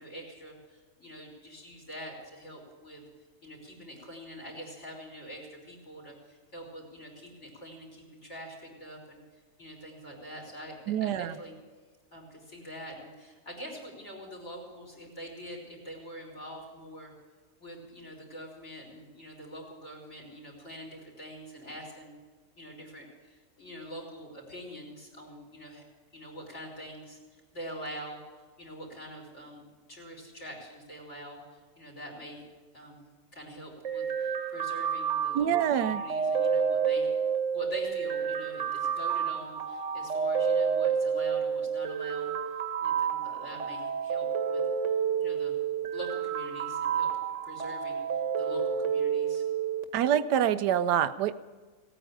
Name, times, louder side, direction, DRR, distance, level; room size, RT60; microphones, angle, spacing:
voice 1, 0.0-3.0 3.4-11.6 12.1-17.1 17.6-22.1 22.6-25.8 26.1-28.2 28.6-32.4 32.7-33.0 33.3-35.5 35.8-37.1 37.5-42.3 42.8-44.6 45.2-45.6 45.9-47.1 47.4-48.0 48.4-49.4, equal, 45° left, 0 dB, 4.1 m, -44 dB
voice 2, 10.9-11.3 35.3-36.0 49.9-51.3, right 10 dB, 85° right, 13 dB, 1.2 m, -26 dB
sound 1, 33.8-49.8, right 7 dB, 50° right, 1.3 m, -30 dB
17.5 x 9.2 x 8.8 m, 1.4 s
omnidirectional pair, 1.7 m